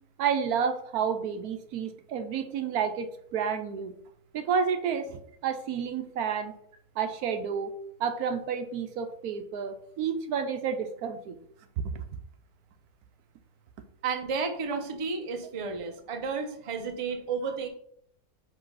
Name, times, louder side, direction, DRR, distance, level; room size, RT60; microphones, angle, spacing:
voice 1, 0.2-3.9 4.3-6.5 7.0-7.7 8.0-11.4 11.9-12.0, right 7 dB, 75° right, 9 dB, 1.1 m, -30 dB
voice 2, 14.0-17.7, right 5 dB, 30° right, 4 dB, 0.6 m, -32 dB
5.3 x 3.3 x 5.5 m, 0.67 s
omnidirectional pair, 1.7 m